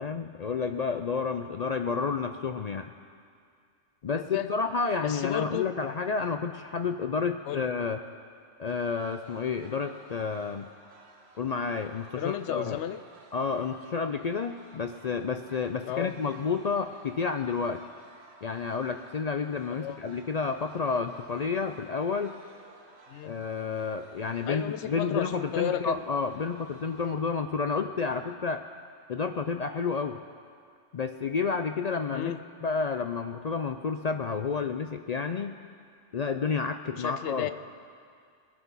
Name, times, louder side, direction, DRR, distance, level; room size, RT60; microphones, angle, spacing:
voice 1, 0.0-2.9 4.0-8.0 8.6-10.7 11.4-12.8 13.3-17.8 18.4-22.3 23.2-28.6 29.1-30.2 30.9-32.4 32.6-35.6 36.1-37.5, left 5 dB, 55° left, 7 dB, 0.4 m, -30 dB
voice 2, 4.1-4.5 5.0-5.7 7.5-7.7 12.2-13.0 15.8-16.1 19.8-20.0 23.1-23.4 24.5-26.0 32.1-32.4 37.0-37.5, left 11 dB, 75° left, 13 dB, 0.9 m, -33 dB
sound 1, 8.7-27.2, right 3 dB, 65° right, 1.5 m, -56 dB
20.0 x 10.0 x 5.5 m, 2.2 s
omnidirectional pair, 1.2 m